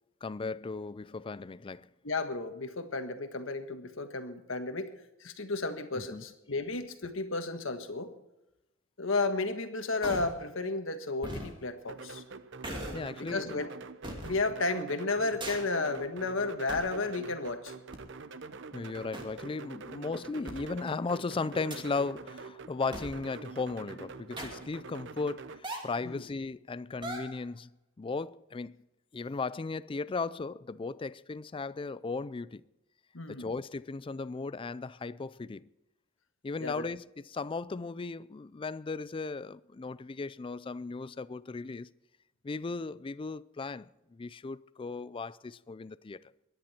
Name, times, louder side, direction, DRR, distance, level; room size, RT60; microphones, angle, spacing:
voice 1, 0.2-1.9 6.0-6.2 12.9-13.6 18.7-27.7 28.0-28.8 29.1-32.6 33.3-35.7 36.4-41.9 42.4-46.2, left 4 dB, 25° left, 0.4 m, -36 dB
voice 2, 2.0-4.9 5.2-8.1 9.0-12.2 13.2-13.7 14.2-17.7 26.0-26.2 33.1-33.5 36.6-36.8, left 3 dB, 70° left, 1.6 m, -33 dB
sound 1, 10.0-10.4 11.2-11.5 12.6-13.1 14.0-14.3 15.4-15.7 16.7-17.0 17.9-18.0 19.1-19.2 20.5-20.6 21.7-22.0 22.9-23.2 24.4-24.7 25.6-26.0 27.0-27.4, right 1 dB, 25° right, 2.6 m, -38 dB
sound 2, 11.9-25.6, right 4 dB, 65° right, 0.8 m, -46 dB
23.0 x 10.5 x 4.4 m
head